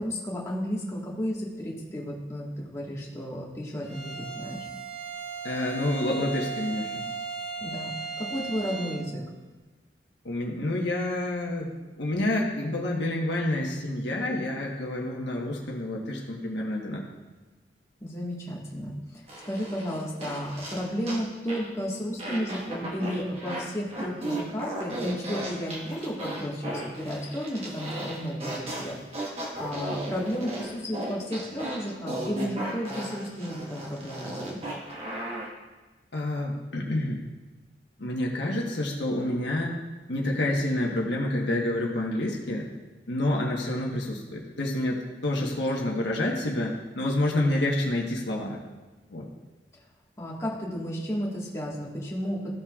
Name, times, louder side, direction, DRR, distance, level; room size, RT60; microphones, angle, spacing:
voice 1, 0.0-4.7 7.6-9.2 18.0-34.6 45.4-45.5 50.2-52.4, equal, 15° left, -5 dB, 1.6 m, -33 dB
Bowed string instrument, 3.8-9.1, right 5 dB, 70° right, 1.3 m, -36 dB
voice 2, 5.4-7.0 10.2-11.7 12.0-17.1 36.1-37.2 38.0-39.7 40.1-42.7 43.1-48.6 49.1-49.3, left 1 dB, 75° left, -1 dB, 1.3 m, -28 dB
sound 1, 19.3-21.2 21.5-21.7 22.2-23.6 23.9-35.5, right 1 dB, 35° right, 1.5 m, -35 dB
14.5 x 5.9 x 2.4 m, 1.2 s
head